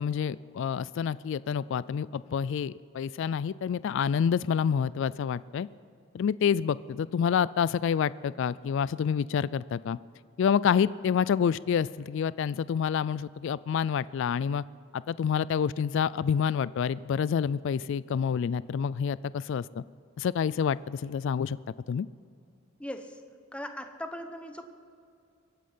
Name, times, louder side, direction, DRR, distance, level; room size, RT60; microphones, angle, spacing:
voice 1, 0.0-5.7 6.1-10.0 10.4-14.6 14.9-19.8 20.2-21.6 21.9-22.1, left 7 dB, 65° left, 20 dB, 0.3 m, -28 dB
voice 2, 22.8-23.2 23.5-24.7, equal, 5° left, 7 dB, 0.9 m, -39 dB
23.5 x 8.5 x 5.6 m, 2.5 s
head